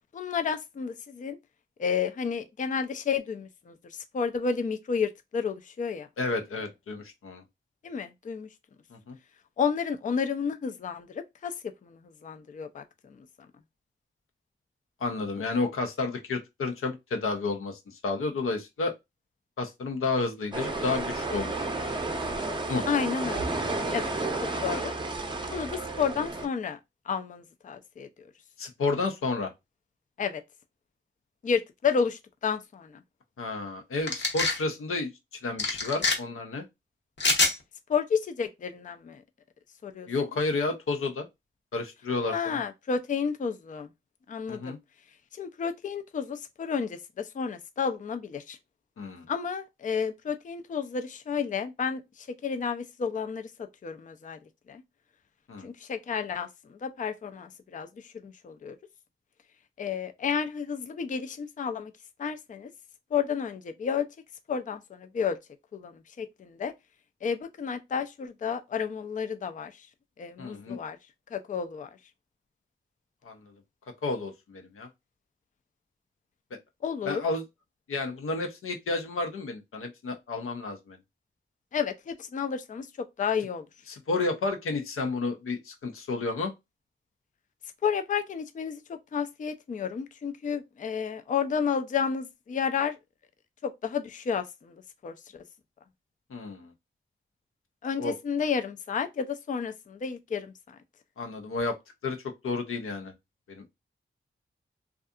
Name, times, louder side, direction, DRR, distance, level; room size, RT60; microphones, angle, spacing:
voice 1, 0.1-1.4 1.8-6.1 7.8-8.5 9.6-12.8 13.2-13.3 22.9-23.6 23.9-24.1 24.6-24.9 25.5-26.8 27.1-28.1 30.2-30.4 31.4-33.0 37.9-39.2 39.8-40.1 42.3-43.9 44.3-44.8 45.3-48.6 49.3-54.4 54.7-54.8 55.6-58.8 59.8-61.9 62.2-62.7 63.1-64.1 64.5-65.4 65.7-66.7 67.2-69.9 70.2-71.0 71.3-71.9 76.8-77.2 81.7-83.6 87.8-93.0 93.6-94.8 95.0-95.4 97.8-100.8, left 6 dB, 40° left, 0.4 m, -31 dB
voice 2, 6.2-7.4 8.9-9.2 15.0-18.9 19.6-21.9 22.7-22.8 28.6-29.5 33.4-35.1 35.4-36.7 40.1-41.3 41.7-42.6 44.5-44.8 49.0-49.2 55.5-55.7 70.4-70.8 73.2-73.5 74.0-74.9 77.0-77.4 77.9-81.0 83.9-86.5 96.3-96.7 98.0-98.2 101.2-101.8 102.0-103.1 103.5-103.7, left 3 dB, 85° left, 0.6 m, -31 dB
sound 1, 20.5-26.5, right 2 dB, 20° right, 0.6 m, -32 dB
sound 2, 34.1-34.6 35.6-36.2 37.2-37.5, left 3 dB, 60° left, 0.8 m, -25 dB
2.6 x 2.4 x 2.3 m
cardioid pair, 55°, 21 cm